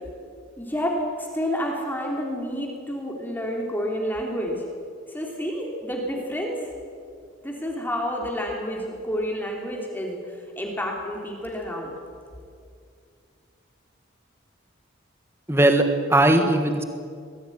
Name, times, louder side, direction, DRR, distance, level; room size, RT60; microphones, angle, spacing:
voice 1, 0.6-4.6 5.1-6.6 7.4-10.2 10.6-11.9, equal, 10° left, 0 dB, 3.2 m, -29 dB
voice 2, 15.5-16.8, right 1 dB, 10° right, 6 dB, 1.4 m, -19 dB
22.0 x 16.5 x 9.6 m, 2.3 s
head